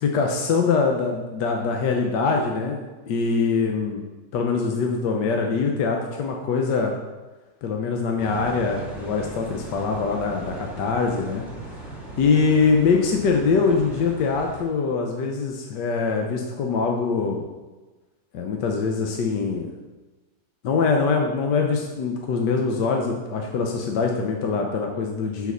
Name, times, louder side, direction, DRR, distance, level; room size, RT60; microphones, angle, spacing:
voice 1, 0.0-4.0 4.3-6.9 7.6-11.4 12.2-17.5 18.3-19.7 20.6-25.5, left 4 dB, 70° left, 2 dB, 1.5 m, -23 dB
sound 1, 8.2-14.6, right 1 dB, ahead, 2.4 m, -38 dB
10.5 x 4.9 x 6.8 m, 1.2 s
omnidirectional pair, 1.9 m